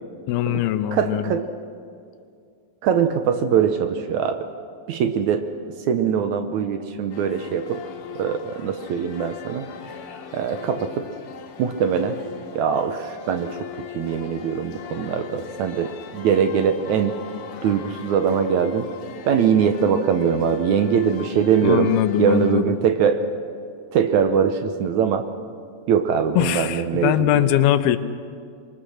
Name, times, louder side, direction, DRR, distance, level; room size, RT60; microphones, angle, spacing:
voice 1, 0.3-1.3 21.6-22.8 26.4-28.0, left 12 dB, 90° left, 11 dB, 2.7 m, -21 dB
voice 2, 0.9-1.5 2.8-4.5 4.9-5.5 5.9-7.8 8.2-9.7 10.3-11.1 11.6-12.2 12.6-17.2 17.6-18.9 19.3-21.9 22.2-23.2 23.9-25.3 25.9-27.5, right 7 dB, 70° right, 8 dB, 1.8 m, -22 dB
sound 1, 7.1-22.6, left 8 dB, 70° left, 3.2 m, -40 dB
26.5 x 22.5 x 6.5 m, 2.3 s
omnidirectional pair, 4.3 m